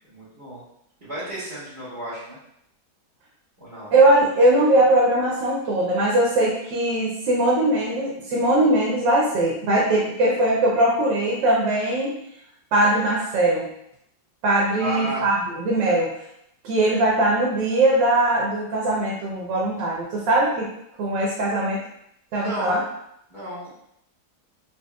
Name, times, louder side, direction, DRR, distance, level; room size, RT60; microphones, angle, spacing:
voice 1, 0.1-0.6 1.0-2.4 3.6-3.9 14.8-15.2 22.3-22.8 23.3-23.7, right 1 dB, 35° right, -11 dB, 1.4 m, -33 dB
voice 2, 3.9-12.1 12.7-13.7 14.4-16.1 16.6-20.7 21.0-21.8 22.3-22.8, right 1 dB, 90° right, -4 dB, 1.4 m, -20 dB
4.2 x 2.8 x 2.3 m, 0.77 s
omnidirectional pair, 1.9 m